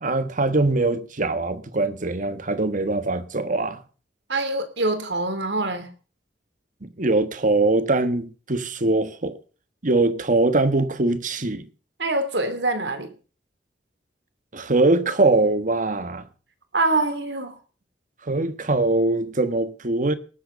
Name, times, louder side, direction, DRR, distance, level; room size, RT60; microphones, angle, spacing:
voice 1, 0.0-3.8 6.8-9.4 9.8-11.7 14.5-16.3 18.2-20.1, right 2 dB, 45° right, 1.4 m, -22 dB
voice 2, 4.3-5.9 12.0-13.1 16.7-17.6, right 2 dB, 75° right, 2.8 m, -24 dB
18.5 x 7.9 x 6.7 m
head